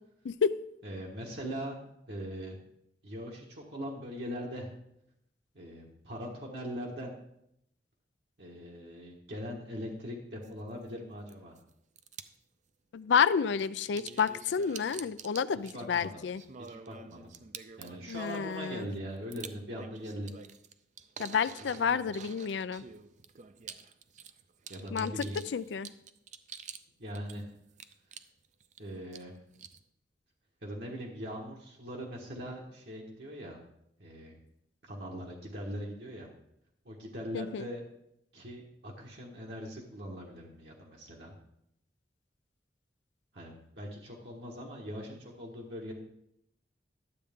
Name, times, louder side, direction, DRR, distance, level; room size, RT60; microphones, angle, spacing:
voice 1, 0.2-0.6 12.9-16.4 18.1-18.9 21.2-22.9 24.9-25.3 25.5-25.9 37.3-37.7, left 6 dB, 85° left, 15 dB, 0.4 m, -30 dB
voice 2, 0.8-1.7 2.1-2.6 3.0-4.7 5.5-7.1 8.4-11.5 15.7-16.2 16.6-17.3 17.8-20.3 21.7-22.1 24.7-25.4 27.0-27.4 28.8-29.4 30.6-33.6 34.0-34.4 34.8-36.3 36.8-37.8 38.3-41.3 43.3-45.9, equal, 70° right, -2 dB, 1.5 m, -41 dB
sound 1, 10.4-10.5 11.3-11.6 12.0-12.4 13.6-26.8 27.1-28.8 29.1-29.8, right 7 dB, 45° right, 0.5 m, -48 dB
11.5 x 7.6 x 3.6 m, 0.78 s
head